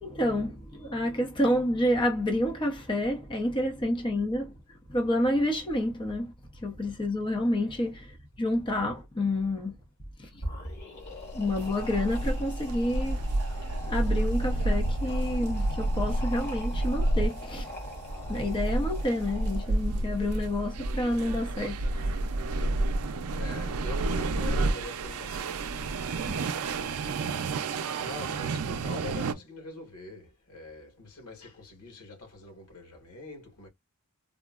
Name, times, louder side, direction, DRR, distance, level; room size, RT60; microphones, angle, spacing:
voice 1, 0.0-4.5 4.9-9.7 10.2-10.4 11.3-13.2 13.9-17.7 18.3-22.2 22.5-22.7 26.3-26.5, left 1 dB, 20° left, 0.6 m, -29 dB
sound 1, 10.3-20.0, left 1 dB, 50° left, 1.5 m, -42 dB
sound 2, 11.2-29.3, right 2 dB, 75° right, 0.4 m, -30 dB
voice 2, 23.4-25.6 28.0-33.7, left 2 dB, 85° left, 1.2 m, -44 dB
3.6 x 2.0 x 2.3 m
head